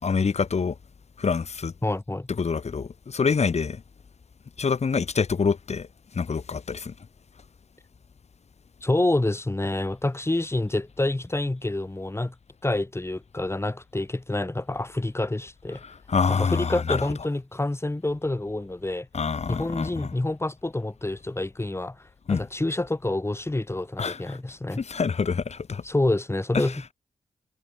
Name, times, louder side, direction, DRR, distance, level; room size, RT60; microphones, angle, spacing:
voice 1, 0.0-0.8 1.2-1.7 2.4-3.8 4.6-5.9 6.1-6.9 15.8-17.1 19.1-20.1 22.3-22.5 24.0-24.4 24.8-25.8 26.5-26.7, left 5 dB, 60° left, 2.4 m, -26 dB
voice 2, 1.8-2.3 8.8-12.3 12.6-15.8 16.3-19.1 19.5-22.0 22.3-24.8 25.8-26.9, left 2 dB, 20° left, 2.6 m, -27 dB
cardioid pair, 50°, 13 cm